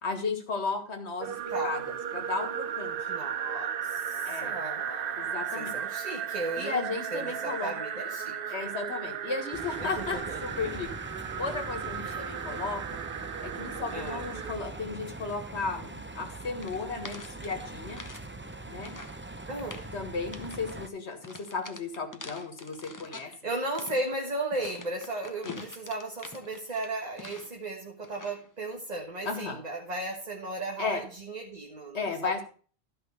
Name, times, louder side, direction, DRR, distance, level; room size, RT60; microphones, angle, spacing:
voice 1, 0.0-1.4 1.6-3.1 4.3-4.6 5.2-5.8 6.6-7.7 8.5-10.9 11.4-12.8 13.4-18.0 18.7-18.9 19.9-23.3 25.5-25.6 29.2-29.6 30.8-31.0 31.9-32.4, left 4 dB, 90° left, 6 dB, 2.0 m, -34 dB
sound 1, 1.2-14.6, right 8 dB, 60° right, 0.8 m, -35 dB
voice 2, 1.5-1.8 3.1-8.7 9.8-10.4 12.0-12.3 13.9-14.3 19.5-19.9 23.2-32.4, right 2 dB, 40° right, 1 dB, 1.5 m, -36 dB
sound 2, 9.5-20.9, right 2 dB, 15° right, 0.6 m, -42 dB
sound 3, 16.6-18.2 18.5-19.2 19.5-19.9 20.3-20.8 21.2-23.4 23.7-27.7 28.0-28.5, left 2 dB, 20° left, 0.8 m, -46 dB
13.0 x 5.6 x 5.5 m, 0.41 s
omnidirectional pair, 1.1 m